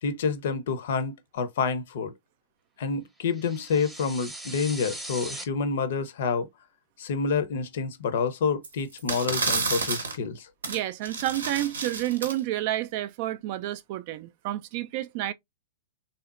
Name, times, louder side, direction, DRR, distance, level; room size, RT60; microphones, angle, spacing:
voice 1, 0.0-2.1 2.8-6.5 7.0-10.5, left 5 dB, 55° left, 0.6 m, -28 dB
sound 1, 3.3-5.4, right 1 dB, 10° right, 0.8 m, -39 dB
sound 2, 8.6-8.7 9.0-10.2 10.6-10.8 11.0-12.4, right 4 dB, 70° right, 0.7 m, -30 dB
voice 2, 10.7-15.3, right 14 dB, 45° right, 0.3 m, -30 dB
3.4 x 2.8 x 2.4 m
figure-of-eight pair, 100°, 0 cm